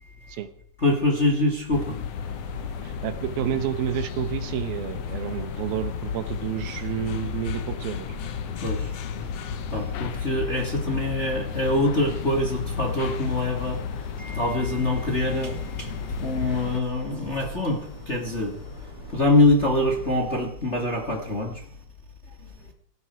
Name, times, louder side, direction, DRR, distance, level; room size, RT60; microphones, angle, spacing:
voice 1, 0.8-2.0 8.6-8.9 9.7-13.8 14.2-15.9 16.2-18.6 19.1-21.6, left 2 dB, 25° left, 3 dB, 1.9 m, -24 dB
sound 1, 1.7-16.8, left 7 dB, 75° left, 1.4 m, -33 dB
sound 2, 2.1-20.4, equal, 45° left, 8.7 m, -42 dB
voice 2, 2.8-8.1, right 10 dB, 80° right, 12 dB, 2.9 m, -30 dB
18.0 x 14.5 x 4.7 m, 0.65 s
omnidirectional pair, 4.2 m